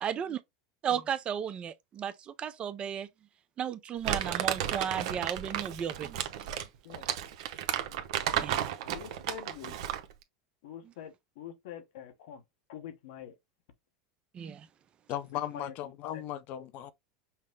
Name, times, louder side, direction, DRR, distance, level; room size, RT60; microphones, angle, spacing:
voice 1, 0.0-0.4 0.8-3.1 3.6-6.2 8.4-8.6 14.3-14.7, right 8 dB, 30° right, 0.5 m, -34 dB
Crumpling crinkling, 4.0-10.1, right 11 dB, 75° right, 0.7 m, -33 dB
voice 2, 8.8-9.8 10.6-12.4 12.7-13.3 15.3-16.2, left 9 dB, 75° left, 0.9 m, -45 dB
voice 3, 15.1-16.9, left 12 dB, 50° left, 0.5 m, -37 dB
5.7 x 2.1 x 3.3 m
supercardioid pair, 120°, 3 cm